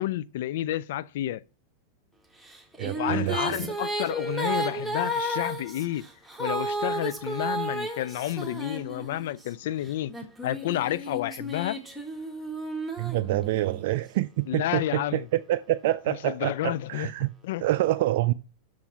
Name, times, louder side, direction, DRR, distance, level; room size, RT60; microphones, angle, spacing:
voice 1, 0.0-1.4 2.9-6.1 6.4-10.1 10.4-11.8 14.5-15.3 16.1-17.1 17.4-17.7, left 13 dB, 55° left, 0.4 m, -30 dB
Female singing, 2.5-9.4 10.1-13.8, right 1 dB, ahead, 1.7 m, -33 dB
voice 2, 2.8-3.7 13.0-17.3 17.6-18.3, right 15 dB, 50° right, 0.4 m, -27 dB
7.0 x 6.5 x 5.9 m
figure-of-eight pair, 90°, 0 cm